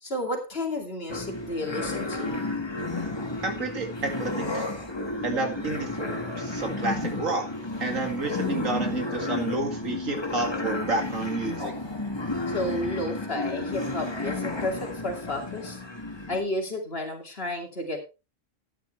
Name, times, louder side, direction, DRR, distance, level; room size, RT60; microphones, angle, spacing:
voice 1, 0.0-2.3 12.5-15.8 16.3-18.0, left 1 dB, 50° left, 2 dB, 2.9 m, -32 dB
sound 1, 1.1-16.4, left 2 dB, 20° left, 1.7 m, -32 dB
voice 2, 3.4-4.7 5.2-7.5 7.8-11.7, right 3 dB, 85° right, 5 dB, 2.6 m, -30 dB
12.5 x 9.8 x 3.3 m, 0.28 s
omnidirectional pair, 1.3 m